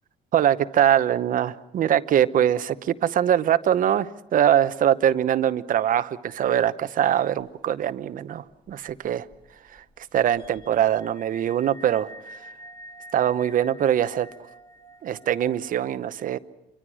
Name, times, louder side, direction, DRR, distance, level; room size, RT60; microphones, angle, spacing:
voice 1, 0.3-9.3 10.1-12.1 13.1-14.3 15.0-16.4, right 10 dB, 55° right, 13 dB, 0.9 m, -22 dB
sound 1, 7.4-7.9 8.1-8.2 8.5-15.7, right 1 dB, 25° left, 2.9 m, -47 dB
27.0 x 24.0 x 6.3 m, 0.93 s
cardioid pair, 110°, 17 cm